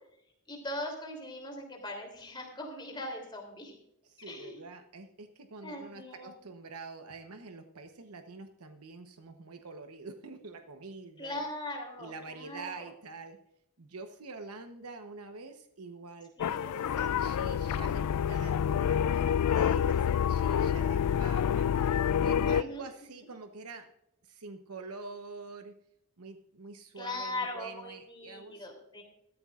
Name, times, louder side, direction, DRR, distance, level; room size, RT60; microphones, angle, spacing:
voice 1, 0.5-3.7 4.3-4.6 5.6-6.4 11.2-12.9 16.4-16.7 22.5-22.8 27.0-29.0, left 1 dB, 20° left, 1 dB, 3.2 m, -40 dB
voice 2, 4.0-11.4 12.0-13.4 13.8-23.9 24.2-25.8 26.2-28.7, right 3 dB, 90° right, 6 dB, 1.0 m, -46 dB
sound 1, 16.4-22.6, left 8 dB, 90° left, 0.3 m, -28 dB
15.0 x 14.0 x 2.5 m, 0.78 s
head